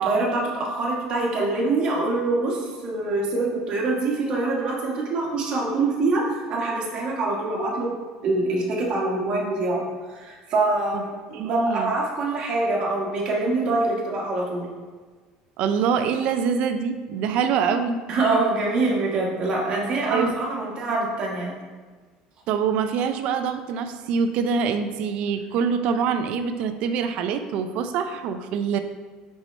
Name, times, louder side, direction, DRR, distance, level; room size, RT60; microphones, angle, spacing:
voice 1, 0.0-7.9 8.2-9.8 10.1-14.7 18.1-21.5, right 2 dB, 40° right, -3 dB, 1.5 m, -25 dB
voice 2, 11.3-11.9 15.6-18.0 20.1-20.3 22.5-28.8, right 6 dB, 55° right, 9 dB, 0.5 m, -25 dB
6.0 x 5.5 x 3.3 m, 1.4 s
cardioid pair, 160°, 2 cm